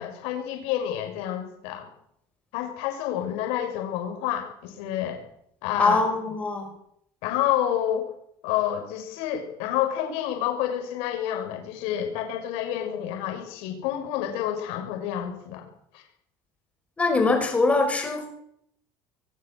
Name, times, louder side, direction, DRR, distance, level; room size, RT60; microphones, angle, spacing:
voice 1, 0.0-1.9 2.5-5.2 5.6-6.0 7.2-8.1 8.4-15.7 15.9-16.0, left 11 dB, 70° left, 5 dB, 6.4 m, -29 dB
voice 2, 5.8-6.7 17.0-18.3, left 3 dB, 15° left, 5 dB, 5.7 m, -22 dB
22.5 x 17.5 x 7.9 m, 0.71 s
cardioid pair, 165°, 10 cm